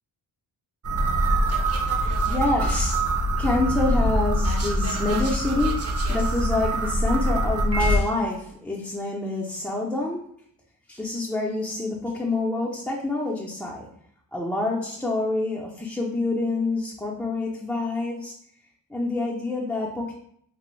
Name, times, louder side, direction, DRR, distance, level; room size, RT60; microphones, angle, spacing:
sound 1, 0.8-8.0, right 1 dB, 35° right, 0.6 m, -24 dB
voice 1, 1.9-3.0 3.4-10.2 10.9-13.9 14.3-18.3 18.9-20.1, left 2 dB, 5° left, -4 dB, 0.3 m, -27 dB
3.3 x 2.0 x 3.0 m, 0.68 s
cardioid pair, 95°, 42 cm